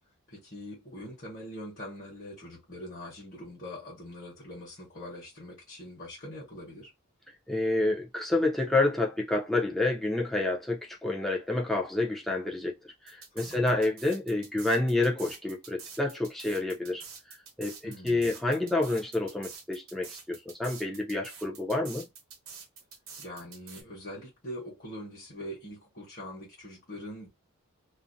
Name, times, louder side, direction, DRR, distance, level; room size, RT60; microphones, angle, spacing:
voice 1, 0.3-6.9 13.4-13.8 17.8-18.3 23.2-27.3, left 1 dB, 40° left, 1.1 m, -43 dB
voice 2, 7.5-12.7 13.0-17.0 17.6-22.1, left 2 dB, ahead, 0.5 m, -28 dB
sound 1, 13.1-23.8, right 6 dB, 65° right, 0.9 m, -47 dB
2.5 x 2.0 x 2.6 m
head